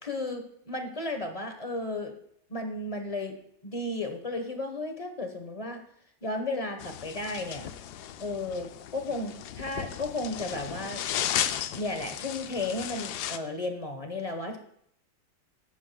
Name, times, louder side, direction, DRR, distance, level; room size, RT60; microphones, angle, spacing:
voice 1, 0.0-2.1 2.5-3.4 3.6-5.8 6.2-7.7 8.2-11.0 11.7-14.6, left 2 dB, 25° left, 5 dB, 0.9 m, -34 dB
sound 1, 6.8-13.4, left 11 dB, 75° left, 1.1 m, -35 dB
17.0 x 8.7 x 2.3 m, 0.68 s
omnidirectional pair, 1.9 m